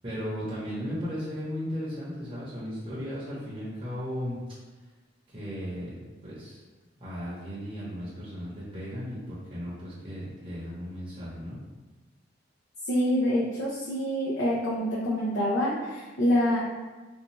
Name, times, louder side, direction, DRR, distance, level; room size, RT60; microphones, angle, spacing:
voice 1, 0.0-4.4 5.3-6.6 7.0-11.6, equal, 30° right, -9 dB, 0.7 m, -36 dB
voice 2, 12.9-16.6, equal, 80° left, -7 dB, 0.5 m, -26 dB
2.6 x 2.2 x 2.9 m, 1.2 s
head